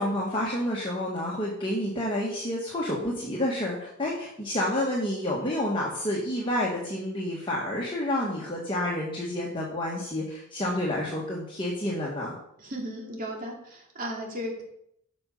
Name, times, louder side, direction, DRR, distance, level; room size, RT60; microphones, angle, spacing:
voice 1, 0.0-12.3, left 1 dB, 25° left, -4 dB, 1.5 m, -29 dB
voice 2, 12.6-14.6, equal, 40° right, 0 dB, 2.4 m, -35 dB
12.5 x 5.3 x 5.3 m, 0.73 s
head